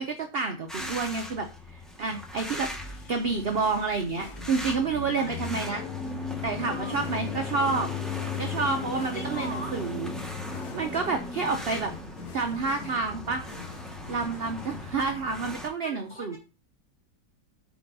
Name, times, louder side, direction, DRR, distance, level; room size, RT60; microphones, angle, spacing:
voice 1, 0.0-5.8 6.4-7.9 8.4-10.1 10.7-11.9 12.3-13.4 14.1-16.4, right 4 dB, 55° right, 5 dB, 0.7 m, -29 dB
sound 1, 0.7-15.7, left 3 dB, ahead, 0.8 m, -36 dB
sound 2, 2.8-14.9, left 5 dB, 65° left, 1.5 m, -48 dB
voice 2, 5.2-5.8 6.7-7.0 9.1-9.8 15.8-16.4, equal, 25° left, -1 dB, 2.5 m, -41 dB
8.0 x 4.0 x 3.9 m, 0.33 s
omnidirectional pair, 1.8 m